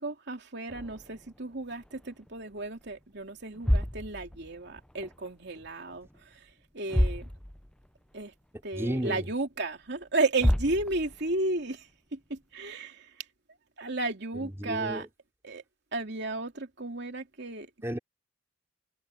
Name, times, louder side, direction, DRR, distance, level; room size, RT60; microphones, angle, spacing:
voice 1, 0.0-6.5 6.7-7.3 8.1-8.3 8.6-13.2 13.8-15.1 15.4-15.6 15.9-17.7, right 2 dB, 55° right, 3.1 m, -33 dB
sound 1, 0.7-2.3 2.6-3.0 3.4-5.3 5.5-6.2 6.5-6.6 6.9-7.9 8.2-8.3 8.9-9.0 10.0-10.1 10.4-11.4, equal, 5° left, 0.5 m, -30 dB
voice 2, 8.8-9.3 14.3-15.1 17.8-18.0, equal, 15° right, 3.0 m, -33 dB
head